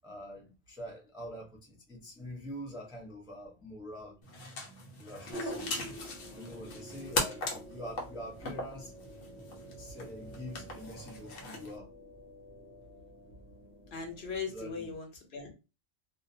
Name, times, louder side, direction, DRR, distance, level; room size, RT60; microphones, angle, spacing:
voice 1, 0.0-4.2 5.0-5.7 6.3-8.9 9.8-11.9 14.4-15.0, equal, 5° right, 0.4 m, -45 dB
sound 1, 4.2-11.8, left 2 dB, 90° left, 1.1 m, -40 dB
sound 2, 5.3-14.4, right 1 dB, 35° left, 1.0 m, -47 dB
voice 2, 13.9-15.6, left 5 dB, 60° left, 0.9 m, -39 dB
2.4 x 2.1 x 2.6 m
omnidirectional pair, 1.3 m